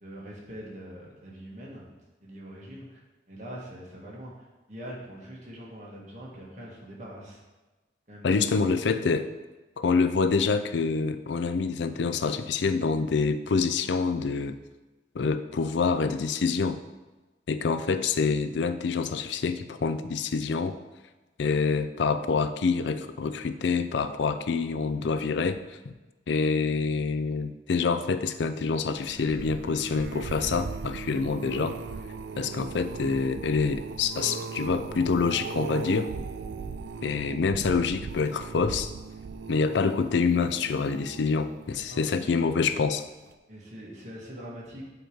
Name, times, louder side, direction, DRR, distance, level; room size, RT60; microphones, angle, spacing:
voice 1, 0.0-1.8 2.2-3.0 3.3-7.4 8.1-8.8 41.9-42.5 43.5-44.8, equal, 40° right, -4 dB, 1.5 m, -43 dB
voice 2, 8.2-9.3 9.8-14.6 15.1-16.8 17.5-20.8 21.4-25.9 26.3-31.8 32.4-36.1 37.0-38.9 39.5-43.0, left 5 dB, 90° left, 10 dB, 0.4 m, -26 dB
sound 1, 28.8-42.2 42.7-43.1 43.3-43.4, right 4 dB, 80° right, 0.4 m, -38 dB
7.7 x 3.0 x 5.1 m, 1.2 s
head